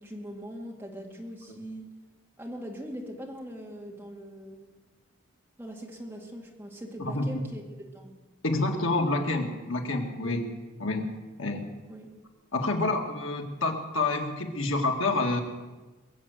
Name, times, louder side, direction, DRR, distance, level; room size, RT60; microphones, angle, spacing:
voice 1, 0.0-1.9 2.4-4.7 5.6-7.6 7.9-8.2 10.2-10.4 11.9-12.1 12.8-13.0, equal, 10° right, -1 dB, 2.2 m, -41 dB
voice 2, 7.0-7.4 8.4-10.5 10.8-11.1 11.4-11.8 12.5-15.4, left 2 dB, 80° left, 3 dB, 1.9 m, -28 dB
21.5 x 8.0 x 8.0 m, 1.2 s
head